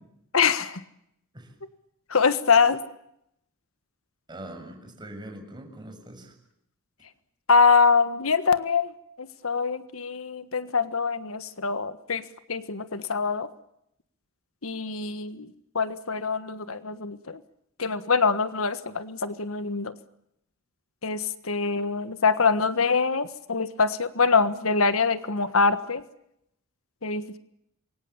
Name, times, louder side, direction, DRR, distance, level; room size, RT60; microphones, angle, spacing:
voice 1, 0.3-0.8 2.1-2.8 7.5-8.9 9.2-13.5 14.6-15.5 15.7-17.4 17.8-20.0 21.0-26.0 27.0-27.4, left 5 dB, 75° left, 12 dB, 1.5 m, -24 dB
voice 2, 4.3-6.3, right 1 dB, 20° right, 4 dB, 7.3 m, -42 dB
27.5 x 24.0 x 7.1 m, 0.78 s
head